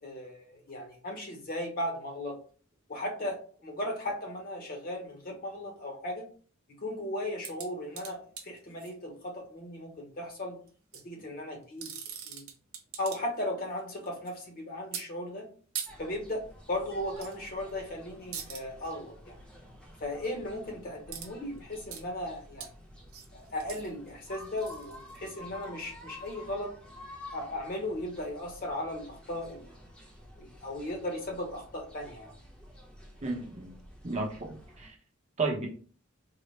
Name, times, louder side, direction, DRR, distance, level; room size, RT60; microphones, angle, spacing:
voice 1, 0.0-2.4 2.9-6.3 6.8-10.6 11.0-11.9 12.3-12.5 13.0-15.5 16.0-19.4 20.0-22.7 23.3-26.7 27.3-29.7 30.4-32.3, left 1 dB, 45° left, 2 dB, 0.9 m, -36 dB
sound 1, 7.4-8.9 10.7-11.0 11.6-13.4 13.7-14.3 14.9-15.1 15.7-15.9 17.2-17.4 17.7-17.9 18.3-18.6 21.1-21.3 21.6-22.0 22.6-22.7 23.1-25.6 26.3-26.4, right 8 dB, 80° right, 0.8 m, -41 dB
sound 2, 15.9-34.9, left 1 dB, 5° left, 0.7 m, -51 dB
voice 2, 33.2-33.8 34.0-34.9 35.4-35.7, right 3 dB, 30° right, 0 dB, 0.7 m, -33 dB
3.8 x 2.0 x 3.2 m, 0.42 s
head